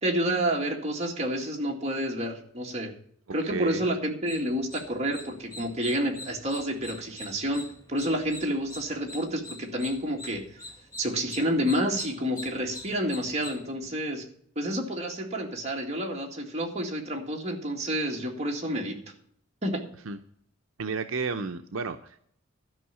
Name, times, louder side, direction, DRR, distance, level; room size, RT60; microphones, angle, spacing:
voice 1, 0.0-2.9 3.3-10.4 11.0-14.3 14.6-19.0 19.6-19.8, equal, 30° right, 0 dB, 2.0 m, -29 dB
voice 2, 3.5-3.8 20.1-20.2 20.8-22.3, right 4 dB, 75° right, 7 dB, 0.6 m, -32 dB
sound 1, 4.3-13.6, left 2 dB, 15° left, 2.0 m, -44 dB
12.5 x 5.6 x 8.4 m, 0.64 s
head